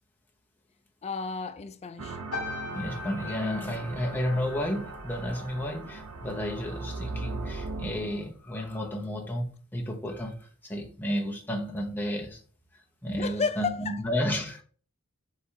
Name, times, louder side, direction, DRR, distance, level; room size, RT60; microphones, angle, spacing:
voice 1, 1.0-2.2 13.2-14.0, left 5 dB, 30° left, 0.3 m, -32 dB
sound 1, 2.0-8.3, right 3 dB, 85° right, 0.6 m, -39 dB
sound 2, 2.3-6.9 7.2-7.6, left 4 dB, 75° left, 0.9 m, -42 dB
voice 2, 2.7-12.4 13.0-14.6, equal, 10° left, 0.7 m, -32 dB
Thunder, 3.4-8.7, equal, 60° right, 1.9 m, -53 dB
4.7 x 3.4 x 2.7 m
head